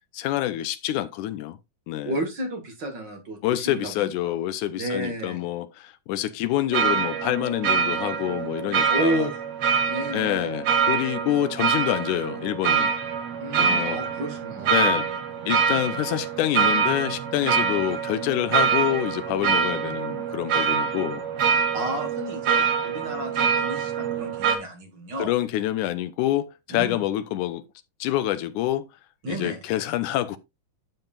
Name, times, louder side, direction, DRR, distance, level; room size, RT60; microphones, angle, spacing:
voice 1, 0.1-1.6 1.9-2.1 3.4-9.3 10.1-12.9 13.6-14.0 14.7-15.1 15.4-21.2 25.2-27.6 28.0-28.9 29.3-30.4, left 13 dB, 80° left, 2.2 m, -27 dB
voice 2, 2.0-4.3 4.8-5.5 8.9-9.4 9.9-10.5 13.4-15.1 21.7-25.3 26.7-27.0 29.2-29.6, right 1 dB, 40° right, 2.0 m, -32 dB
sound 1, 6.7-24.6, right 6 dB, 60° right, 2.4 m, -25 dB
11.0 x 7.8 x 2.5 m
omnidirectional pair, 3.6 m